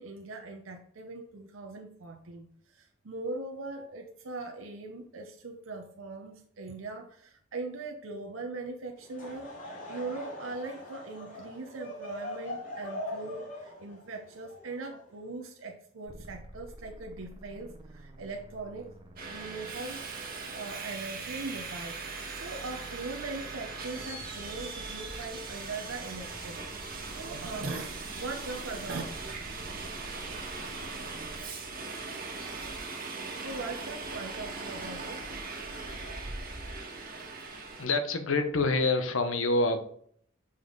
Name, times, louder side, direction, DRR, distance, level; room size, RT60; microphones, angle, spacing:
voice 1, 0.0-20.1 20.5-26.6 27.1-29.0 33.4-35.2, right 3 dB, 85° right, 3 dB, 0.7 m, -40 dB
Laughter / Crowd, 9.0-15.4, left 1 dB, 40° left, 2.9 m, -42 dB
sound 1, 16.1-31.4, right 1 dB, 25° right, 0.8 m, -50 dB
Subway metro underground, 19.2-37.9, right 4 dB, 50° right, 1.4 m, -40 dB
voice 2, 37.8-39.8, left 3 dB, 75° left, 8 dB, 0.9 m, -26 dB
5.6 x 5.2 x 3.8 m, 0.62 s
head